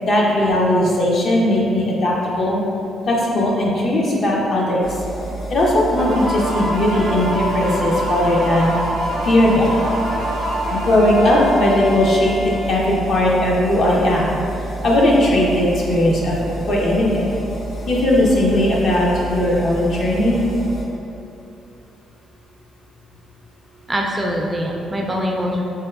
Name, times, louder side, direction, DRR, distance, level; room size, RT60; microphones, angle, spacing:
voice 1, 0.0-2.6 3.1-4.9 5.5-8.7 9.2-9.8 10.7-12.3 12.7-14.3 14.8-16.4 16.7-17.3 17.9-20.4, left 1 dB, 55° left, -4 dB, 0.6 m, -18 dB
sound 1, 4.8-20.8, right 2 dB, 80° left, 1.2 m, -30 dB
sound 2, 6.0-13.5, right 1 dB, 80° right, 0.5 m, -26 dB
voice 2, 23.9-25.6, equal, 15° right, -1 dB, 0.3 m, -23 dB
4.3 x 2.1 x 2.3 m, 2.7 s
cardioid pair, 90°, 0 cm